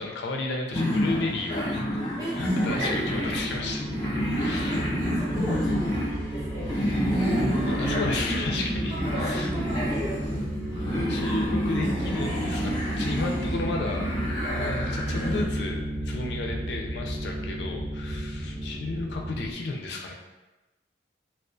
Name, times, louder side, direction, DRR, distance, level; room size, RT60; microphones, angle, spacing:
voice 1, 0.0-2.0 2.3-3.9 4.4-4.9 7.6-9.7 11.1-14.1 14.5-20.1, left 3 dB, 70° left, 1 dB, 0.3 m, -33 dB
sound 1, 0.7-15.5, equal, 30° left, 0.7 m, -28 dB
voice 2, 2.2-3.0 5.1-6.0 6.3-6.7 8.9-10.5, equal, 20° right, -6 dB, 0.5 m, -36 dB
sound 2, 2.7-19.5, right 1 dB, 70° right, 0.9 m, -33 dB
2.3 x 2.3 x 2.4 m, 1.1 s
head